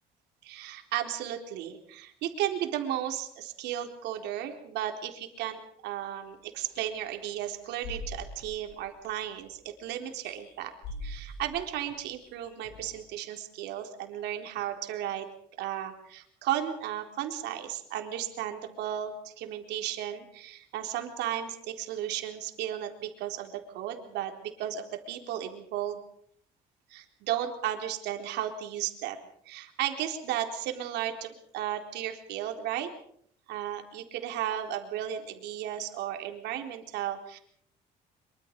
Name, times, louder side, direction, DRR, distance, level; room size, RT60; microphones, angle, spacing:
voice 1, 0.4-10.7 11.0-15.3 15.6-26.0 26.9-29.2 29.5-32.9 33.5-37.4, right 11 dB, 85° right, 4 dB, 4.0 m, -34 dB
sound 1, 6.7-6.8 7.8-9.4 10.3-10.6 10.8-13.0, left 1 dB, 80° left, 6.3 m, -42 dB
25.0 x 24.5 x 5.3 m, 0.64 s
cardioid pair, 110°, 17 cm